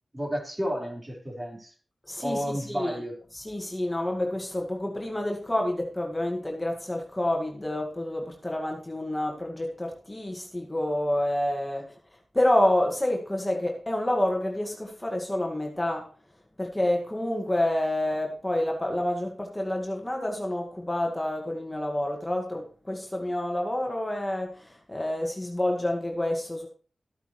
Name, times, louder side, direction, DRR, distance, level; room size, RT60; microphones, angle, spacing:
voice 1, 0.1-1.7 2.2-3.1, equal, 30° right, 4.3 m, -31 dB
voice 2, 2.1-3.0 3.3-16.1 16.6-26.7, left 1 dB, 20° left, 1.8 m, -28 dB
13.5 x 9.0 x 3.1 m
cardioid pair, 45°, 0 cm